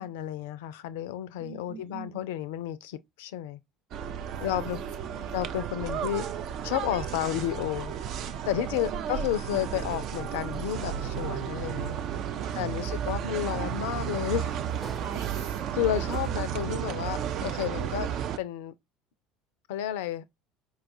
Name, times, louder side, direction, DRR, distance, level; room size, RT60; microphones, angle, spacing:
voice 1, 0.0-3.6 4.4-4.8 5.3-6.2 6.6-8.1 8.5-11.9 12.6-14.5 15.7-18.1 18.4-18.7 19.7-20.2, left 11 dB, 70° left, 0.3 m, -31 dB
voice 2, 1.4-2.3 4.3-5.4 8.6-9.0 12.3-13.0 14.8-16.1, right 6 dB, 70° right, 0.9 m, -44 dB
sound 1, 3.9-18.4, right 8 dB, 50° right, 0.3 m, -33 dB
Sliding door, 12.8-16.7, right 2 dB, 25° right, 0.7 m, -51 dB
4.5 x 2.3 x 2.5 m
figure-of-eight pair, 65°, 0 cm